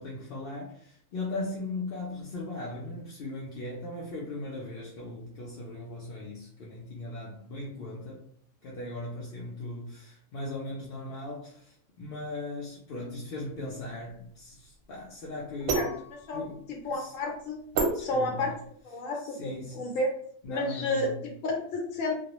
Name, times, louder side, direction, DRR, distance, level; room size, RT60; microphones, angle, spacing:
voice 1, 0.0-8.2 8.6-15.9 16.3-16.6 16.9-17.1 17.9-18.5 19.3-19.9 20.4-21.2, left 2 dB, 60° left, -5 dB, 0.7 m, -38 dB
sound 1, 13.6-18.8, right 3 dB, 60° right, 0.7 m, -33 dB
voice 2, 16.7-17.6 18.0-18.5 18.8-20.1 20.5-22.2, left 2 dB, 90° left, 2 dB, 1.0 m, -31 dB
2.2 x 2.0 x 2.9 m, 0.63 s
omnidirectional pair, 1.3 m